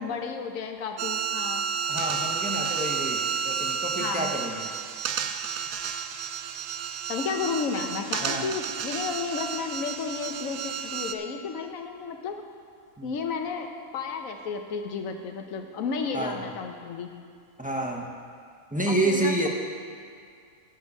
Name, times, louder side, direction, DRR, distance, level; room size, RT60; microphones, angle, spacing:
voice 1, 0.0-1.6 4.0-4.3 6.4-6.6 7.1-12.4 13.0-17.1 18.9-19.3, left 5 dB, 65° left, 4 dB, 1.2 m, -32 dB
sound 1, 1.0-11.1, right 7 dB, 70° right, 1.0 m, -31 dB
voice 2, 1.9-4.7 8.2-8.5 13.0-13.1 16.1-16.5 17.6-18.1 18.7-19.5, right 1 dB, 10° right, 0 dB, 0.6 m, -29 dB
12.5 x 4.5 x 8.2 m, 2.4 s
omnidirectional pair, 1.6 m